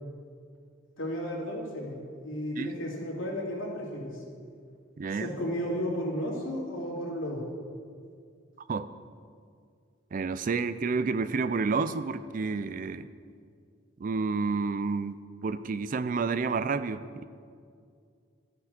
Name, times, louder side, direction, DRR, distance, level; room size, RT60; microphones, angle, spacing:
voice 1, 1.0-4.2 5.1-7.4, equal, 90° left, -4 dB, 2.6 m, -33 dB
voice 2, 5.0-5.3 8.7-8.9 10.1-13.1 14.0-15.2 15.4-17.2, right 4 dB, 40° right, 13 dB, 0.4 m, -30 dB
12.0 x 5.8 x 6.6 m, 2.2 s
head